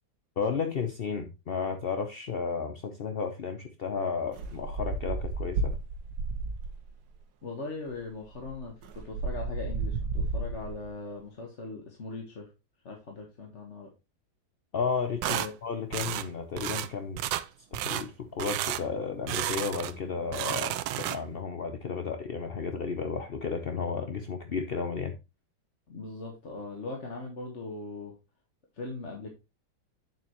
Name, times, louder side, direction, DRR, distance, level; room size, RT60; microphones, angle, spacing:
voice 1, 0.4-5.8 14.7-17.2 17.7-25.1, left 5 dB, 55° left, 6 dB, 0.6 m, -33 dB
sound 1, 4.3-6.9 7.9-8.0 8.3-10.9, right 3 dB, 60° right, 1.4 m, -33 dB
voice 2, 7.4-12.5 12.8-13.9 15.2-15.5 25.9-28.1 28.7-29.3, left 3 dB, 40° left, 1 dB, 1.6 m, -40 dB
sound 2, 15.2-15.5 15.9-16.3 16.6-16.9 17.2-17.5 17.7-18.1 18.4-18.8 19.3-20.0 20.3-21.4, right 13 dB, 80° right, 1.3 m, -32 dB
8.9 x 7.0 x 3.0 m, 0.26 s
omnidirectional pair, 2.1 m